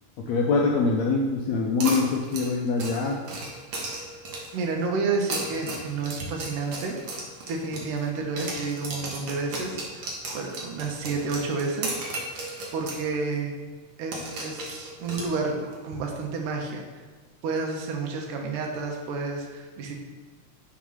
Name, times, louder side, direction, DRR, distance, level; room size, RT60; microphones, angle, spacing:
voice 1, 0.2-3.2, left 4 dB, 80° left, 0 dB, 1.6 m, -24 dB
sound 1, 1.8-4.6 5.1-8.1 8.4-13.0 13.3-13.4 14.1-15.7, right 2 dB, 65° right, 1.1 m, -35 dB
voice 2, 4.5-7.0 7.5-12.0 12.7-13.5 14.0-16.9 17.4-20.0, right 4 dB, 85° right, 2 dB, 2.4 m, -30 dB
6.2 x 3.6 x 5.6 m, 1.3 s
omnidirectional pair, 3.6 m